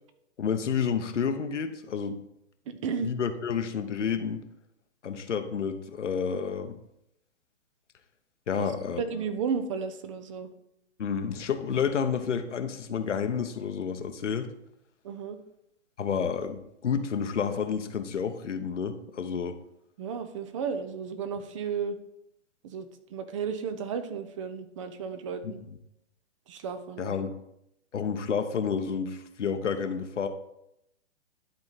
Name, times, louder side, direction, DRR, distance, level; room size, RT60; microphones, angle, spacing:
voice 1, 0.4-2.2 3.0-4.4 5.0-6.8 8.5-9.0 11.0-14.5 16.0-19.6 25.4-25.5 27.0-27.4 27.9-30.3, left 6 dB, 85° left, 8 dB, 0.9 m, -30 dB
voice 2, 2.7-3.1 8.5-8.7 9.0-10.5 15.0-15.4 20.0-22.0 22.6-25.6 26.5-27.2, right 6 dB, 30° right, 10 dB, 0.5 m, -33 dB
11.5 x 3.8 x 4.1 m, 0.81 s
hypercardioid pair, 135°, 35 cm